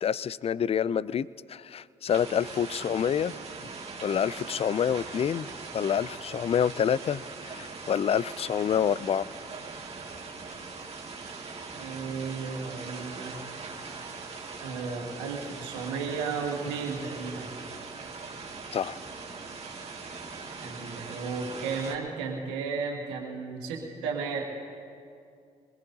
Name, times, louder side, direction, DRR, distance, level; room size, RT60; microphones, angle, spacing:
voice 1, 0.0-3.3 4.0-5.5 5.7-9.3 18.7-19.0, left 8 dB, 40° left, 20 dB, 0.4 m, -27 dB
sound 1, 2.1-22.0, right 4 dB, 40° right, 2.1 m, -41 dB
voice 2, 11.8-13.7 14.6-17.5 20.6-24.4, right 5 dB, 90° right, 0 dB, 1.7 m, -34 dB
22.5 x 20.5 x 2.8 m, 2.4 s
hypercardioid pair, 45°, 15 cm